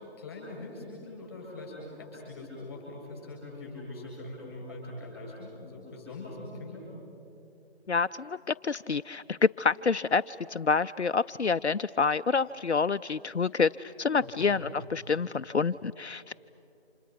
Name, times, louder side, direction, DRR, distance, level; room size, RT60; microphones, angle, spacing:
voice 1, 0.0-6.9 14.2-14.5 16.3-16.4, left 2 dB, 15° left, -2 dB, 7.8 m, -42 dB
voice 2, 7.9-16.3, left 5 dB, 80° left, 11 dB, 0.6 m, -28 dB
30.0 x 27.0 x 6.0 m, 2.7 s
figure-of-eight pair, 165°, 34 cm